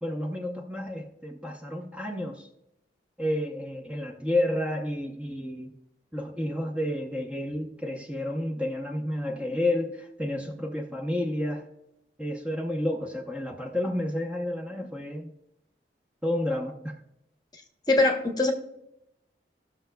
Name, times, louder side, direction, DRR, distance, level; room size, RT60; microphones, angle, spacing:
voice 1, 0.0-2.5 3.2-5.7 6.1-11.7 12.2-15.3 16.2-16.9, left 1 dB, 5° right, 0 dB, 0.8 m, -30 dB
voice 2, 17.9-18.5, left 2 dB, 25° left, 4 dB, 1.0 m, -22 dB
18.5 x 6.3 x 2.3 m, 0.82 s
head